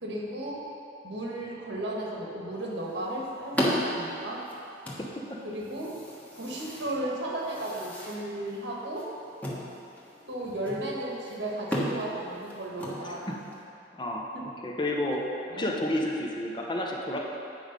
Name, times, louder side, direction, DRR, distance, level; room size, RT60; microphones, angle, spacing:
voice 1, 0.0-0.6 1.0-4.4 5.4-6.0 6.3-9.1 10.3-13.2 14.3-14.5 15.5-15.7, right 1 dB, 80° right, -3 dB, 1.5 m, -35 dB
sound 1, 2.5-13.6, equal, 10° left, 1.1 m, -36 dB
voice 2, 13.0-13.4 14.0-14.3 14.6-15.2 15.5-17.2, left 1 dB, 25° left, -1 dB, 0.8 m, -30 dB
8.6 x 4.9 x 5.3 m, 2.7 s
head